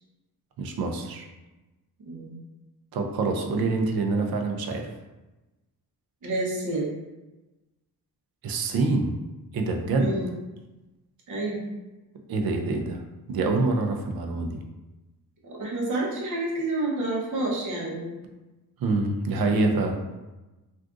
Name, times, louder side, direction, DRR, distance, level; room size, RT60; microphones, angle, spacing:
voice 1, 0.6-1.3 2.9-4.9 8.4-9.1 9.5-10.1 12.3-13.0 13.3-14.6 18.8-20.0, right 3 dB, 80° right, 3 dB, 0.5 m, -26 dB
voice 2, 2.1-2.4 6.2-6.9 9.9-10.3 11.3-11.6 15.4-18.1, right 2 dB, 55° right, -3 dB, 0.9 m, -29 dB
3.5 x 2.5 x 2.4 m, 1.1 s
wide cardioid pair, 175°, 36 cm